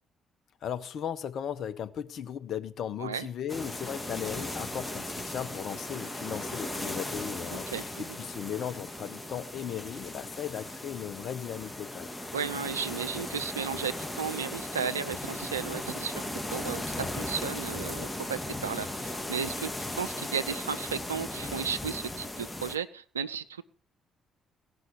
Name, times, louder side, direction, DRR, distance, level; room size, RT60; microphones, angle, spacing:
voice 1, 0.6-12.1, left 9 dB, 55° left, 1.1 m, -37 dB
sound 1, 3.5-22.8, left 1 dB, 10° left, 1.9 m, -37 dB
voice 2, 7.5-8.0 12.3-16.2 16.5-23.6, right 7 dB, 85° right, 0.5 m, -34 dB
18.0 x 6.2 x 7.1 m
figure-of-eight pair, 45°, 0 cm